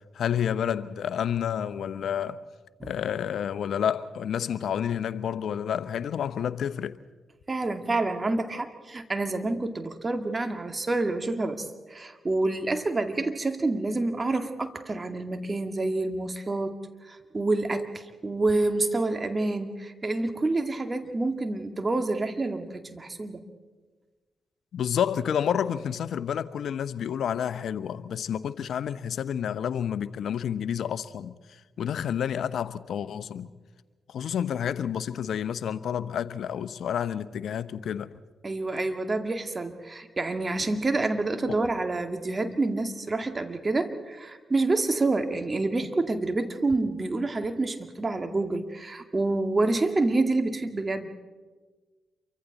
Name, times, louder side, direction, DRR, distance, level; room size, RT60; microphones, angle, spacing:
voice 1, 0.1-2.4 2.8-7.0 14.4-14.5 24.7-31.4 31.8-33.5 34.1-38.1 41.5-41.6, left 8 dB, 70° left, 0.8 m, -29 dB
voice 2, 7.5-16.8 17.1-23.4 38.4-51.1, right 2 dB, 35° right, 2.2 m, -28 dB
28.5 x 24.0 x 4.1 m
hypercardioid pair, 40°, 0 cm